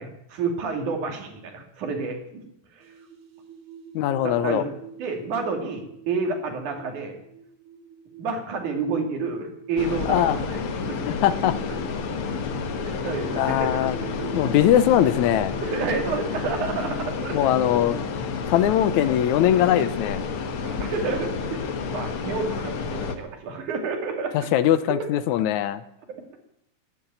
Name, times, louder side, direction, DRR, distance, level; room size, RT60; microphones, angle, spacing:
voice 1, 0.0-2.4 2.7-2.9 4.2-4.7 5.0-7.1 8.2-11.0 12.8-14.3 15.6-17.4 19.6-19.7 20.6-24.5 25.0-25.1, right 4 dB, 85° right, 4 dB, 3.8 m, -30 dB
sound 1, 2.8-19.1, right 6 dB, 55° right, 2.3 m, -45 dB
voice 2, 4.0-4.6 10.1-10.4 11.2-11.6 13.4-14.0 14.3-15.5 17.3-18.0 18.5-20.2 24.3-25.8, left 11 dB, 80° left, 14 dB, 2.2 m, -21 dB
sound 2, 9.8-23.2, left 5 dB, 55° left, 1.9 m, -30 dB
12.5 x 11.0 x 9.0 m, 0.78 s
omnidirectional pair, 3.4 m